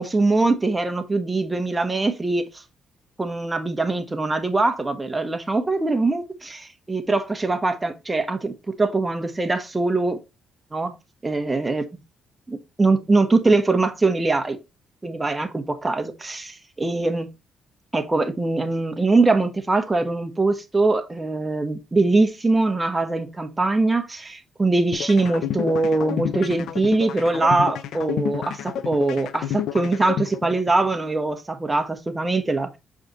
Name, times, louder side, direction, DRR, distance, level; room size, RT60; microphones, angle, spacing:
voice 1, 0.0-2.4 3.2-6.5 6.9-10.2 10.7-10.9 11.2-11.8 12.5-14.6 15.0-16.4 16.8-17.3 17.9-32.8, right 3 dB, 20° right, 1.2 m, -22 dB
sound 1, 24.9-30.9, left 10 dB, 80° left, 0.5 m, -30 dB
6.6 x 5.0 x 3.0 m
cardioid pair, 90°, 0 cm